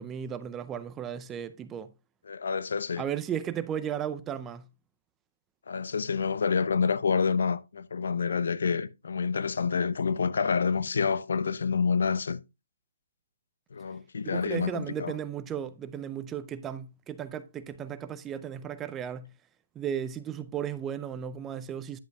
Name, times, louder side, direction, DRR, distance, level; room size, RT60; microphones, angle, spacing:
voice 1, 0.0-1.9 3.0-4.7 14.2-19.3 19.8-22.0, right 9 dB, 15° right, 0.5 m, -35 dB
voice 2, 2.3-3.0 5.7-12.4 13.7-15.1, left 5 dB, 70° left, 0.7 m, -28 dB
10.5 x 8.0 x 2.3 m
hypercardioid pair, 145°, 0 cm